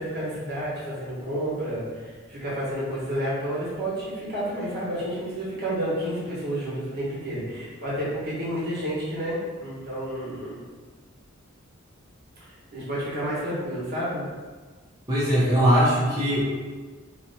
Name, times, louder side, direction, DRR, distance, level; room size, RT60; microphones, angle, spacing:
voice 1, 0.0-10.6 12.4-14.3, right 1 dB, 50° right, -7 dB, 1.1 m, -30 dB
voice 2, 15.1-16.4, equal, 20° right, -10 dB, 0.6 m, -20 dB
2.7 x 2.1 x 4.0 m, 1.4 s
head